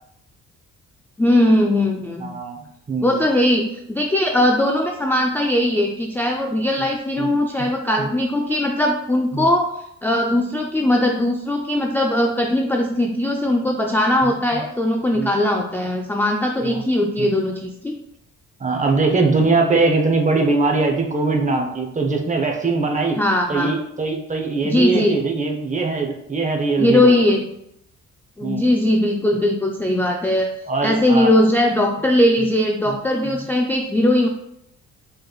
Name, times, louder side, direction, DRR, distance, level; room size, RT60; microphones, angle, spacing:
voice 1, 1.2-2.3 3.0-9.7 10.0-18.0 23.2-23.7 24.6-25.2 26.8-27.5 28.4-30.5 30.8-34.3, left 1 dB, 5° left, 1 dB, 0.3 m, -19 dB
voice 2, 2.2-2.6 2.9-3.2 7.2-7.3 8.0-8.1 9.3-9.5 14.2-14.6 15.1-15.3 16.6-16.8 17.2-17.3 18.6-23.2 23.5-27.2 28.4-28.7 30.6-31.3 32.9-33.0 33.2-33.5, right 3 dB, 25° right, 2 dB, 0.7 m, -21 dB
4.5 x 3.1 x 2.3 m, 0.77 s
cardioid pair, 90°, 30 cm